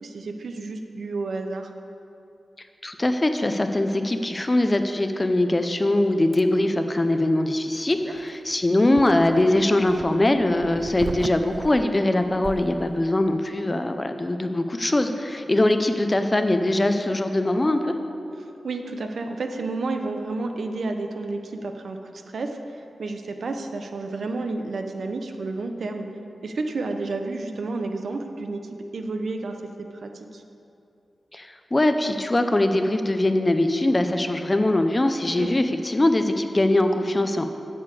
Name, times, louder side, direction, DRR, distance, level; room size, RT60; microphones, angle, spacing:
voice 1, 0.0-1.7 18.4-22.0 22.3-26.1 26.4-30.4 35.4-35.5, right 3 dB, 70° right, 5 dB, 0.8 m, -31 dB
voice 2, 2.8-17.9 31.3-37.5, left 1 dB, 20° left, 7 dB, 0.6 m, -22 dB
sound 1, 6.3-6.4 8.0-13.0, right 4 dB, 55° right, 0.4 m, -38 dB
8.5 x 6.7 x 8.3 m, 2.6 s
wide cardioid pair, 125°, 0 cm